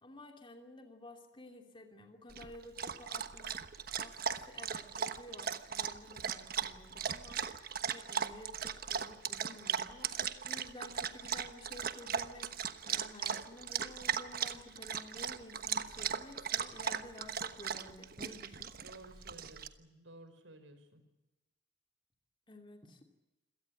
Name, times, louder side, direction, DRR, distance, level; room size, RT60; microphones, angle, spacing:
voice 1, 0.0-3.6 4.0-7.4 7.8-18.7 22.5-23.0, left 1 dB, 25° left, 4 dB, 2.8 m, -52 dB
Dog, 2.3-19.7, right 7 dB, 50° right, 1.2 m, -38 dB
voice 2, 18.8-21.0, right 1 dB, 75° right, 9 dB, 4.9 m, -55 dB
27.0 x 18.0 x 8.3 m, 0.99 s
head